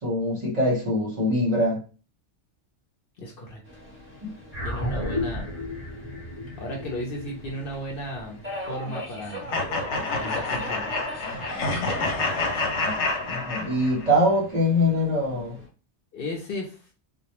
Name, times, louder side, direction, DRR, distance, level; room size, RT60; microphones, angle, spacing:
voice 1, 0.0-1.8 4.2-4.3 11.5-11.9 12.8-15.6, left 1 dB, 40° right, -4 dB, 0.9 m, -24 dB
voice 2, 3.2-3.6 4.6-5.5 6.6-9.5 10.1-10.9 16.1-16.9, left 1 dB, 60° left, 0 dB, 0.7 m, -35 dB
Subway metro underground, 3.7-15.7, equal, 10° right, 0.8 m, -42 dB
sound 1, 4.5-9.1, left 1 dB, 35° left, 0.9 m, -33 dB
sound 2, 9.5-14.1, left 3 dB, 80° left, 0.9 m, -28 dB
2.2 x 2.1 x 2.8 m, 0.35 s
omnidirectional pair, 1.2 m